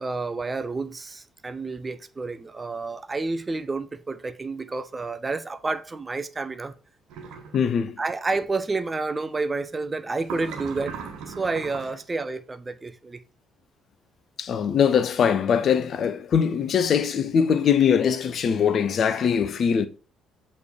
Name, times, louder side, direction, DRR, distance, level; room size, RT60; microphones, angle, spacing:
voice 1, 0.0-6.7 8.0-11.0 11.3-13.2, right 3 dB, 25° right, 0.6 m, -30 dB
sound 1, 7.1-7.6 10.2-12.0, right 6 dB, 60° right, 1.2 m, -38 dB
voice 2, 7.5-8.0 14.4-19.9, left 7 dB, 45° left, 0.6 m, -22 dB
8.1 x 3.4 x 4.5 m
figure-of-eight pair, 45°, 0 cm